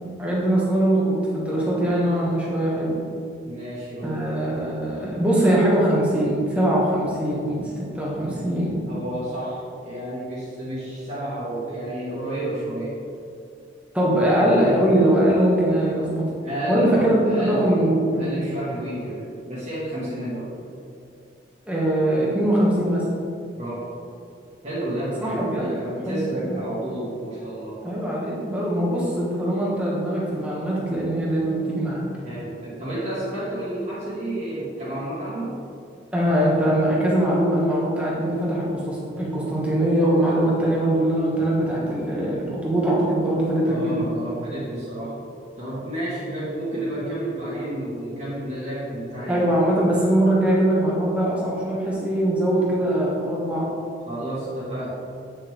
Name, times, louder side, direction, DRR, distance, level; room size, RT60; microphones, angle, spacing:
voice 1, 0.2-3.0 4.0-8.8 13.9-16.3 16.7-18.3 21.7-23.0 25.2-26.2 26.5-26.6 27.8-32.0 36.1-44.0 49.3-53.7, right 1 dB, 5° right, -6 dB, 1.6 m, -22 dB
voice 2, 3.4-4.3 8.8-13.0 14.1-14.3 16.4-17.8 18.1-20.5 23.5-23.9 24.6-27.8 32.2-35.6 43.6-45.2 45.6-49.4 54.1-55.0, right 1 dB, 40° right, -11 dB, 1.9 m, -30 dB
9.2 x 6.5 x 3.7 m, 2.5 s
head